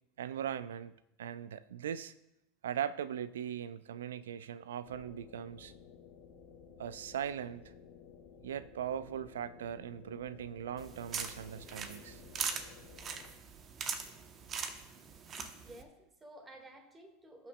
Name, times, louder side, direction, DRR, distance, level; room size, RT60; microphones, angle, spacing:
voice 1, 0.2-0.9 1.2-2.1 2.6-5.7 6.8-7.7 8.4-12.2, right 9 dB, 75° right, 16 dB, 0.4 m, -39 dB
sound 1, 4.8-13.3, left 6 dB, 60° left, 1.7 m, -55 dB
sound 2, 10.8-15.8, right 6 dB, 35° right, 0.9 m, -41 dB
voice 2, 15.4-17.5, right 1 dB, 20° right, 5 dB, 1.7 m, -53 dB
17.5 x 6.0 x 2.2 m, 0.89 s
hypercardioid pair, 85°, 0 cm